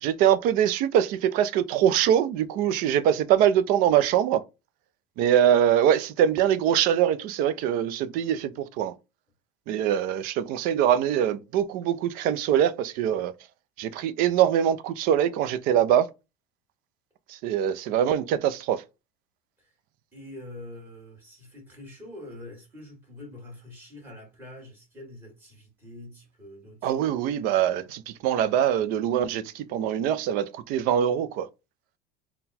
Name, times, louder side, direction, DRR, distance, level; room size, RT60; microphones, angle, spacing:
voice 1, 0.0-4.4 5.2-8.9 9.7-13.3 13.8-16.1 17.3-18.8 26.8-31.5, right 10 dB, 45° right, 0.4 m, -23 dB
voice 2, 20.1-27.0, left 1 dB, 10° right, 1.8 m, -45 dB
3.9 x 2.2 x 4.1 m
supercardioid pair, 150°, 20 cm